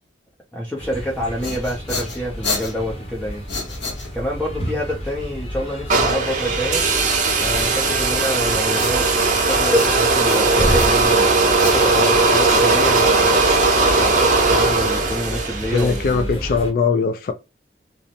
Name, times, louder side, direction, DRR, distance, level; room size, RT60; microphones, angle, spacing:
voice 1, 0.5-3.4 4.1-6.9 7.4-9.2 9.5-11.3 11.6-13.4 13.9-16.4, equal, 5° left, 0.5 m, -26 dB
sound 1, 0.8-16.7, equal, 35° left, 0.8 m, -31 dB
sound 2, 1.4-4.5 7.6-9.4 9.7-11.3 11.6-13.8, left 3 dB, 85° left, 0.8 m, -32 dB
sound 3, 5.9-16.1, right 3 dB, 45° right, 0.6 m, -18 dB
voice 2, 15.7-17.3, left 4 dB, 50° left, 0.3 m, -20 dB
2.5 x 2.0 x 2.7 m
head